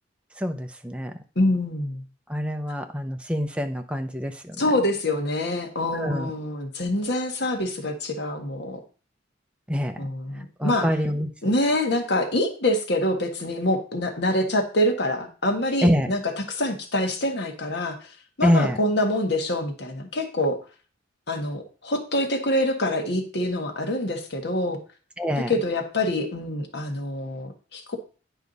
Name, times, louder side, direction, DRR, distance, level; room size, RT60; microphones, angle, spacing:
voice 1, 0.4-1.1 2.3-4.6 5.9-6.3 9.7-10.0 10.6-11.3 15.8-16.1 18.4-18.8 25.2-25.5, equal, 5° right, 5 dB, 0.7 m, -25 dB
voice 2, 1.3-2.0 4.6-8.8 10.0-10.9 11.4-18.1 18.4-20.6 21.3-24.8 25.4-28.0, left 1 dB, 60° left, 4 dB, 1.5 m, -25 dB
10.5 x 4.8 x 4.0 m, 0.37 s
head